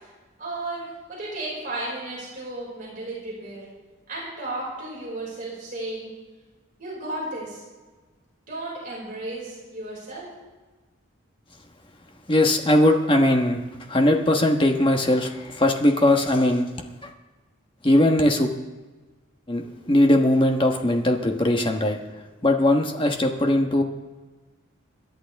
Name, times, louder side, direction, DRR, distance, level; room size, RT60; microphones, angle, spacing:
voice 1, 0.4-3.6 4.1-6.1 6.8-7.6 8.5-10.3, right 2 dB, 40° right, -6 dB, 5.6 m, -34 dB
voice 2, 12.3-13.6 13.9-16.7 17.8-18.5 19.5-22.0 22.4-23.8, left 1 dB, 25° left, 3 dB, 1.3 m, -20 dB
27.0 x 11.0 x 3.5 m, 1.3 s
head